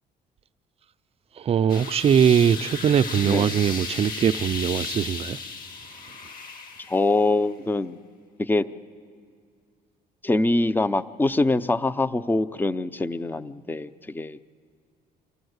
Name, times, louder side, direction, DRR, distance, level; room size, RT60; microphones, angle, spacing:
voice 1, 1.4-5.4, right 8 dB, 35° right, 0.4 m, -21 dB
sound 1, 1.7-7.3, left 4 dB, 55° left, 1.7 m, -35 dB
voice 2, 6.9-8.0 8.4-8.7 10.2-14.4, left 2 dB, 10° left, 0.5 m, -24 dB
25.5 x 14.5 x 8.0 m
cardioid pair, 110°, 17 cm